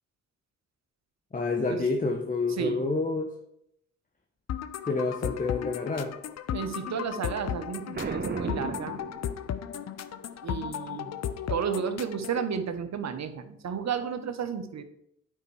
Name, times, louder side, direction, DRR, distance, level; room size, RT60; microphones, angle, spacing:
voice 1, 1.3-3.3 4.9-6.1, left 3 dB, 25° left, 4 dB, 0.9 m, -28 dB
voice 2, 2.6-2.9 6.5-9.0 10.4-11.1 11.5-14.8, right 7 dB, 55° right, 9 dB, 0.9 m, -32 dB
sound 1, 4.5-12.5, left 9 dB, 50° left, 0.6 m, -35 dB
Boom, 7.9-9.8, right 3 dB, 30° right, 1.1 m, -35 dB
9.0 x 5.5 x 3.3 m, 0.74 s
supercardioid pair, 50°, 33 cm